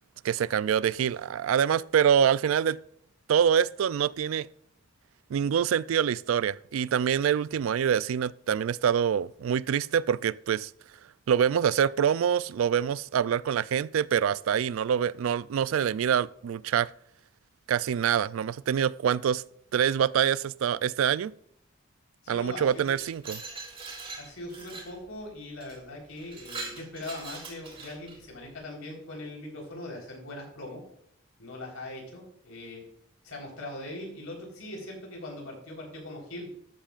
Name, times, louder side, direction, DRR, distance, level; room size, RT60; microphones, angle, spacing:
voice 1, 0.2-2.8 3.3-4.5 5.3-10.7 11.3-16.9 17.7-19.4 19.7-21.3 22.3-23.4, right 8 dB, 85° right, 0.3 m, -25 dB
voice 2, 22.2-22.9 24.2-30.8 31.4-32.8 33.2-36.6, left 1 dB, 90° left, 4.0 m, -41 dB
Glass, 22.7-25.0 25.6-25.8 26.2-28.2, right 3 dB, 30° right, 3.3 m, -42 dB
13.0 x 8.7 x 2.4 m
head